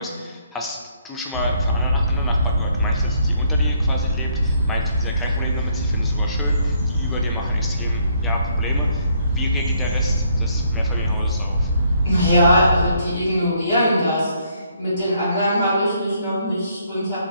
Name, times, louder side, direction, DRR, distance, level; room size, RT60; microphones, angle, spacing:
voice 1, 0.0-11.7, left 2 dB, 10° left, 0 dB, 0.3 m, -32 dB
sound 1, 1.3-12.9, equal, 10° right, 0.7 m, -22 dB
voice 2, 12.0-17.2, equal, 50° left, -10 dB, 1.3 m, -20 dB
2.9 x 2.4 x 2.6 m, 1.5 s
figure-of-eight pair, 145°, 0 cm